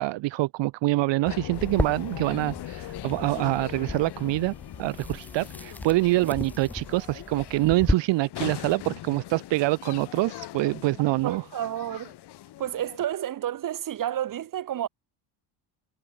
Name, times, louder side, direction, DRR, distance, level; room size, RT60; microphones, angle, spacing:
voice 1, 0.0-4.5 4.8-11.4, right 19 dB, 65° right, 0.9 m, -25 dB
sound 1, 1.2-13.0, left 14 dB, 55° left, 1.8 m, -40 dB
sound 2, 1.5-7.9, left 1 dB, 5° left, 0.8 m, -34 dB
voice 2, 11.2-12.1 12.6-14.9, right 11 dB, 40° right, 1.6 m, -30 dB
cardioid pair, 120°, 48 cm